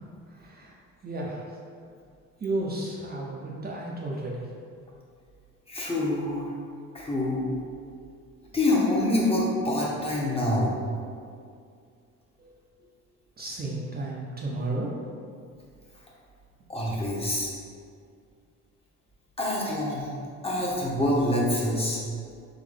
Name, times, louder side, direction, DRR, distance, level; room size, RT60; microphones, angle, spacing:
voice 1, 0.3-0.7 1.0-1.6 2.4-4.5 12.4-12.6 13.4-14.9, right 2 dB, 30° right, -4 dB, 0.6 m, -33 dB
voice 2, 5.7-6.4 6.9-7.4 8.5-10.7 16.7-17.5 19.4-20.1 20.4-22.0, left 1 dB, 20° left, -5 dB, 0.9 m, -26 dB
3.8 x 3.1 x 3.3 m, 2.2 s
cardioid pair, 95°, 31 cm